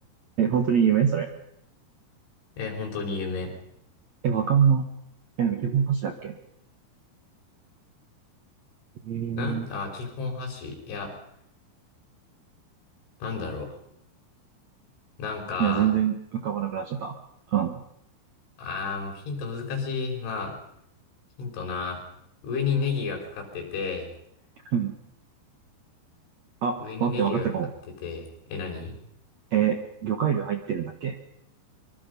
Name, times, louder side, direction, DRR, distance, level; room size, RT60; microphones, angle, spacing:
voice 1, 0.4-1.3 4.2-4.9 5.4-6.4 9.0-9.7 15.6-17.2 17.5-17.8 24.7-24.9 26.6-27.7 29.5-31.2, right 8 dB, 60° right, 5 dB, 1.8 m, -24 dB
voice 2, 2.6-3.5 9.3-11.1 13.2-13.7 15.2-15.9 18.6-20.6 21.4-22.0 22.4-24.1 26.8-27.5 28.0-28.9, left 5 dB, 80° left, 1 dB, 7.7 m, -31 dB
25.0 x 24.0 x 5.5 m, 0.75 s
omnidirectional pair, 5.4 m